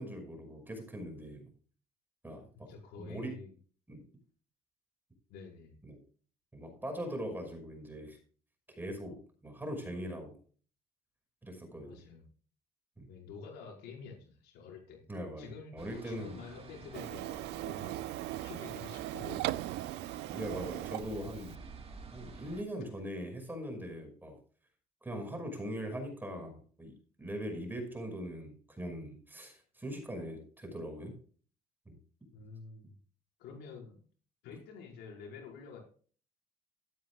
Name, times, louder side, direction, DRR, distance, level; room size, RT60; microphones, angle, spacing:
voice 1, 0.0-1.5 2.2-2.7 3.0-3.4 3.9-4.0 5.8-6.0 6.5-8.2 8.7-10.4 11.4-12.0 13.0-13.1 15.1-16.4 20.3-21.6 22.1-24.4 25.0-31.1 31.9-32.0, equal, 10° right, 4 dB, 5.8 m, -41 dB
voice 2, 2.7-3.5 5.3-5.8 11.9-12.3 13.1-15.0 15.4-18.1 18.4-19.8 23.1-23.2 32.3-33.0 33.4-34.0 34.4-35.8, left 5 dB, 85° left, 0 dB, 5.3 m, -48 dB
sound 1, 15.8-22.6, right 4 dB, 35° right, 2.8 m, -51 dB
Printer, 16.9-21.6, right 16 dB, 85° right, 0.5 m, -39 dB
13.5 x 12.5 x 2.4 m, 0.41 s
cardioid pair, 110°, 17 cm